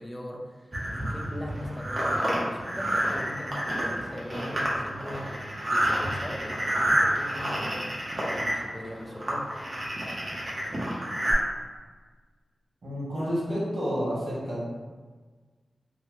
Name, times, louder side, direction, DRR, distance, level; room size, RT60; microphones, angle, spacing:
voice 1, 0.0-8.0 8.3-9.5, equal, 15° left, 0 dB, 0.4 m, -40 dB
sound 1, 0.7-11.3, right 1 dB, 35° right, 0.9 m, -29 dB
voice 2, 12.8-14.6, equal, 70° right, -6 dB, 1.2 m, -30 dB
4.0 x 2.1 x 3.0 m, 1.4 s
wide cardioid pair, 115°, 0 cm